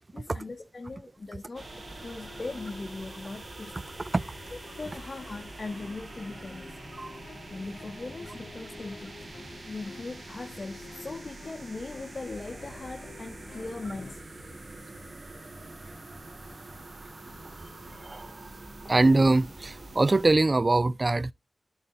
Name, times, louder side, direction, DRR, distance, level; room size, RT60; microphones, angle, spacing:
voice 1, 0.0-1.7 2.0-4.0 4.5-6.8 7.2-9.2 9.7-14.5 17.4-17.7, left 3 dB, 55° left, 0.9 m, -40 dB
sound 1, 1.5-20.3, right 2 dB, 60° right, 1.8 m, -45 dB
sound 2, 1.7-14.2, left 4 dB, 90° left, 0.7 m, -50 dB
voice 2, 18.0-18.5 18.9-21.3, right 2 dB, 45° right, 0.3 m, -23 dB
11.5 x 4.1 x 2.7 m
cardioid pair, 45°, 0 cm